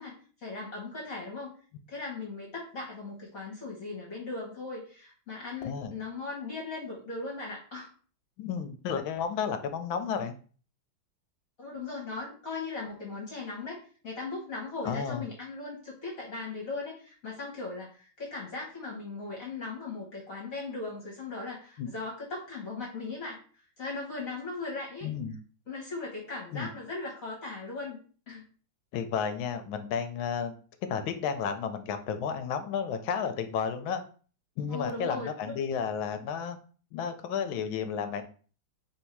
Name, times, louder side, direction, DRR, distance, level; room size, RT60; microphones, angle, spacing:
voice 1, 0.0-1.5 1.9-7.9 11.6-13.8 14.0-23.4 23.8-25.1 25.7-28.0 28.3-28.4 34.7-35.5, left 3 dB, 45° left, -3 dB, 1.3 m, -38 dB
voice 2, 5.6-5.9 8.4-10.3 14.8-15.2 21.8-21.9 25.0-25.3 26.5-26.7 28.9-30.5 30.9-34.0 34.6-36.6 36.9-38.2, left 7 dB, 75° left, 8 dB, 1.3 m, -32 dB
3.6 x 2.7 x 4.4 m, 0.41 s
omnidirectional pair, 2.3 m